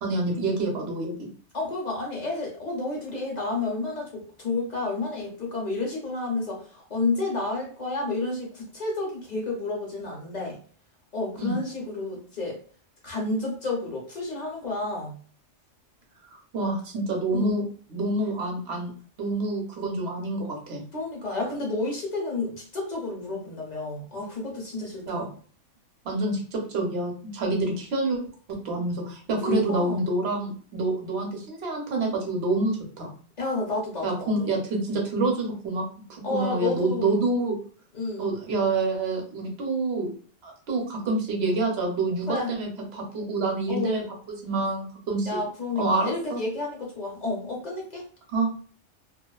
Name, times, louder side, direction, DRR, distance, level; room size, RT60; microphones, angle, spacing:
voice 1, 0.0-1.3 11.4-11.6 16.3-17.6 17.9-18.9 19.2-20.8 25.1-25.2 26.0-28.2 28.6-33.1 34.0-35.8 36.1-37.6 38.2-40.1 40.4-44.0 44.4-45.4 45.8-46.4 48.3-48.5, right 2 dB, 60° right, 1 dB, 0.9 m, -27 dB
voice 2, 1.5-10.6 11.1-12.6 13.0-15.1 17.3-17.5 20.9-25.3 29.4-30.0 33.4-34.5 36.2-37.3 37.9-38.3 42.3-42.6 43.7-44.0 45.2-48.0, left 3 dB, 40° left, -2 dB, 0.7 m, -30 dB
2.3 x 2.3 x 2.3 m, 0.44 s
omnidirectional pair, 1.3 m